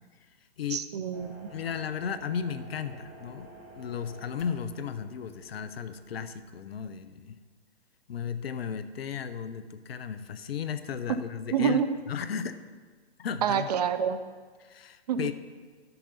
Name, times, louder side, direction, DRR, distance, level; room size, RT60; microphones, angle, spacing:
voice 1, 0.7-1.5 11.5-11.9 13.4-14.2 15.1-15.3, right 8 dB, 40° right, 10 dB, 0.5 m, -27 dB
sound 1, 1.1-6.5, right 1 dB, 65° right, 2.9 m, -51 dB
voice 2, 1.5-7.4 8.1-11.8 12.1-12.6 13.2-13.7 14.6-15.3, left 7 dB, 65° left, 11 dB, 0.7 m, -35 dB
11.5 x 6.7 x 4.1 m, 1.5 s
hypercardioid pair, 130°, 32 cm